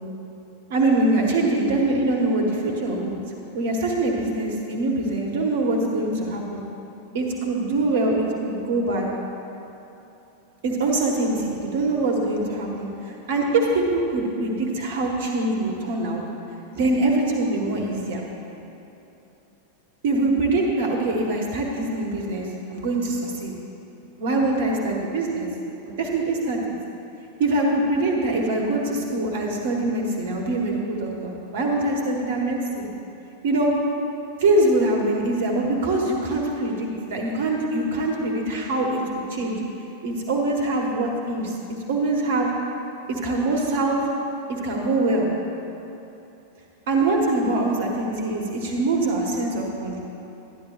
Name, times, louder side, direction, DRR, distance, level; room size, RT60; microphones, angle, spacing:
voice 1, 0.7-3.2 3.5-6.6 7.1-9.1 10.6-16.2 16.7-18.2 20.0-23.5 24.2-25.5 25.8-26.6 27.4-32.9 33.4-33.7 34.4-39.6 40.0-42.5 43.1-44.0 44.5-45.3 46.9-50.0, right 2 dB, 55° right, 0 dB, 1.4 m, -23 dB
12.0 x 10.5 x 2.5 m, 3.0 s
figure-of-eight pair, 90°, 0 cm